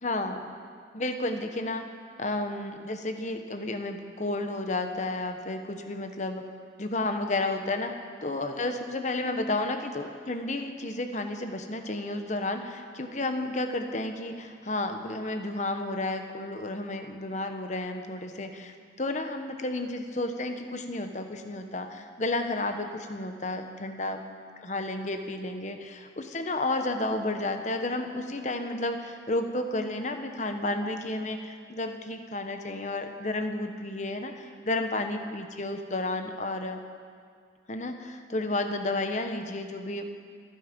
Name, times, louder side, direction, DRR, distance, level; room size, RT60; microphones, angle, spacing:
voice 1, 0.0-0.6 0.9-1.9 2.2-6.4 6.8-7.9 8.2-24.2 24.6-36.8 37.7-40.0, left 2 dB, 40° left, 6 dB, 1.1 m, -32 dB
27.5 x 9.6 x 5.3 m, 2.1 s
head